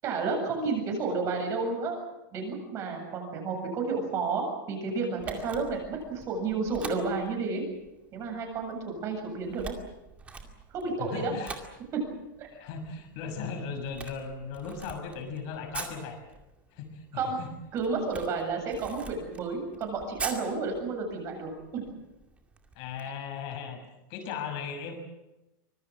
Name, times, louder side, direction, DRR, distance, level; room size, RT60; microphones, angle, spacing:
voice 1, 0.0-2.0 2.3-7.6 8.1-9.7 10.7-11.3 11.9-12.1 12.4-12.5 17.1-17.4 17.7-21.9 23.0-23.1, right 4 dB, 25° right, 3 dB, 7.5 m, -31 dB
Camera, 5.2-23.0, right 4 dB, 10° right, 2.3 m, -45 dB
voice 2, 11.0-11.6 12.5-16.2 16.7-17.5 22.8-23.8 24.1-24.9, left 6 dB, 40° left, 6 dB, 6.3 m, -37 dB
25.0 x 21.5 x 7.6 m, 0.97 s
supercardioid pair, 170°, 11 cm